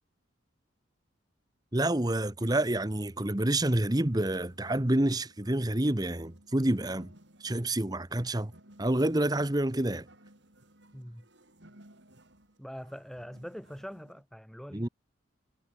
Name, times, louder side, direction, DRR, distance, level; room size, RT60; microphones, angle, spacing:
voice 1, 1.7-7.1 7.4-8.5 8.8-10.1 14.7-14.9, right 1 dB, 20° right, 1.0 m, -28 dB
sound 1, 2.4-14.2, right 1 dB, 60° right, 4.8 m, -59 dB
voice 2, 10.9-11.2 12.6-14.9, equal, ahead, 1.2 m, -43 dB
head